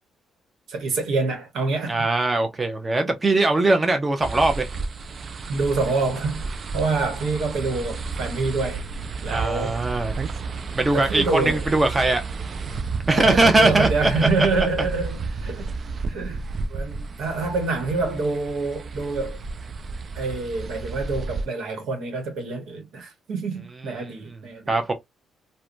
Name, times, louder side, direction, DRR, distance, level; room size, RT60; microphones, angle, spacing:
voice 1, 0.7-2.0 5.5-6.5 6.7-8.8 9.2-9.8 10.9-11.7 13.1-15.8 16.1-19.4 20.1-24.8, right 3 dB, 80° right, 1.1 m, -26 dB
voice 2, 1.9-4.7 9.3-10.1 10.7-12.2 13.1-14.3 24.7-24.9, right 2 dB, 20° right, 0.7 m, -20 dB
sound 1, 4.2-21.5, right 4 dB, 45° right, 0.3 m, -32 dB
2.8 x 2.2 x 2.4 m
cardioid pair, 90°, 0 cm